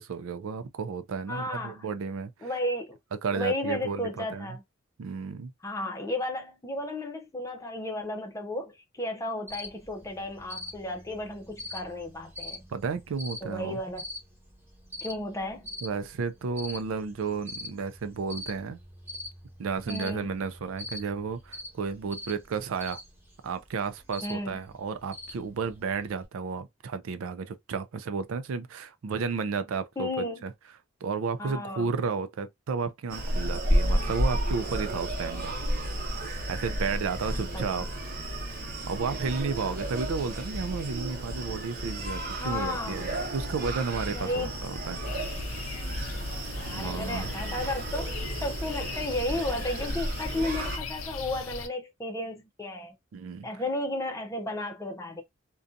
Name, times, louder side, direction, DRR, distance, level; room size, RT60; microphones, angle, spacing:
voice 1, 0.0-2.5 3.2-4.5 5.0-5.5 12.7-13.8 15.8-18.8 19.6-23.0 23.4-30.5 31.0-35.6 36.5-37.9 38.6-45.0 46.7-47.3 53.1-53.5, right 5 dB, 85° right, 0.4 m, -32 dB
voice 2, 1.3-1.9 2.4-3.0 3.3-4.6 5.6-12.7 13.4-14.1 15.0-15.7 19.9-20.3 24.2-24.6 30.0-30.4 31.4-31.9 37.5-37.6 42.4-43.0 44.1-44.5 46.6-52.9 53.4-55.2, left 1 dB, 15° left, 0.6 m, -33 dB
Cricket, 9.5-26.3, left 1 dB, 10° right, 1.0 m, -44 dB
Screaming, 33.1-50.8, right 1 dB, 45° right, 1.0 m, -32 dB
sound 1, 45.0-51.7, left 3 dB, 80° left, 0.5 m, -39 dB
2.5 x 2.3 x 2.5 m
head